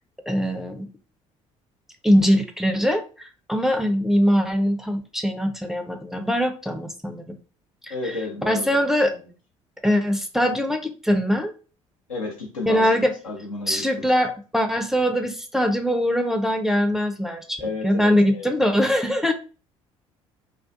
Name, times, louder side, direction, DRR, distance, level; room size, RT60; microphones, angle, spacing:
voice 1, 0.3-0.9 2.0-7.4 7.8-8.1 8.5-9.1 9.8-11.5 12.7-13.1 13.7-19.3, equal, ahead, 6 dB, 0.4 m, -22 dB
voice 2, 7.9-9.2 12.1-14.1 17.6-18.5, left 3 dB, 85° left, -1 dB, 0.7 m, -32 dB
2.3 x 2.3 x 2.5 m, 0.35 s
figure-of-eight pair, 55°, 17 cm